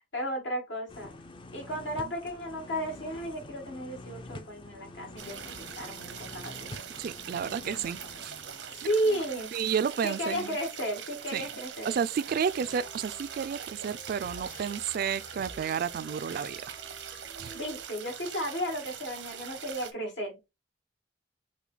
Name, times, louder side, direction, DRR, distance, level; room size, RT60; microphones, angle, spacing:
voice 1, 0.1-1.1 1.5-6.5 8.8-9.5 10.0-12.0 17.5-20.4, equal, 80° left, 1.9 m, -33 dB
sound 1, 0.9-10.7 11.1-11.2, left 2 dB, 30° left, 0.5 m, -47 dB
sound 2, 5.2-19.9, right 8 dB, 90° right, 0.8 m, -42 dB
voice 2, 7.0-8.3 9.5-10.6 11.3-11.4 11.8-16.8 17.4-17.5, right 7 dB, 55° right, 0.3 m, -31 dB
sound 3, 12.4-17.8, equal, 50° left, 1.7 m, -50 dB
5.7 x 2.2 x 3.9 m
head